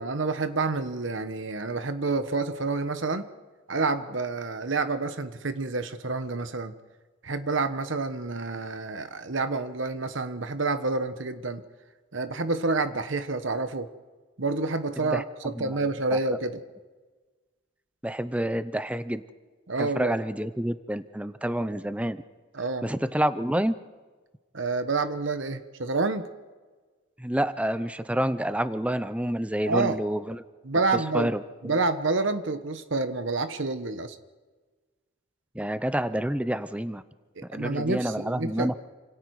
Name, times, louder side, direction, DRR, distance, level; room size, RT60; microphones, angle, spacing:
voice 1, 0.0-3.3 3.7-6.7 7.2-11.6 12.1-13.9 14.4-16.6 19.7-20.1 22.5-22.9 24.5-26.3 29.6-30.0 30.6-31.3 31.6-34.2 37.4-38.7, right 3 dB, 65° right, 10 dB, 1.2 m, -28 dB
voice 2, 18.0-19.2 19.8-22.2 22.8-23.7 27.2-30.4 30.9-31.4 35.5-37.0 37.5-38.9, right 1 dB, 5° right, 13 dB, 0.6 m, -28 dB
28.5 x 27.0 x 4.8 m, 1.3 s
head